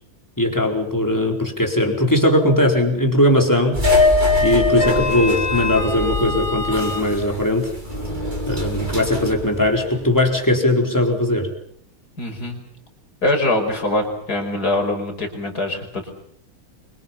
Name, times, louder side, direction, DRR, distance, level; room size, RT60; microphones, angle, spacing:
voice 1, 0.4-3.8 4.4-7.7 8.5-11.5, left 1 dB, 10° left, 2 dB, 4.3 m, -19 dB
sound 1, 3.7-10.3, left 2 dB, 20° right, 5.6 m, -22 dB
voice 2, 12.2-12.6 13.2-16.1, left 2 dB, 45° left, 5 dB, 5.8 m, -23 dB
29.5 x 25.0 x 5.8 m, 0.69 s
omnidirectional pair, 2.4 m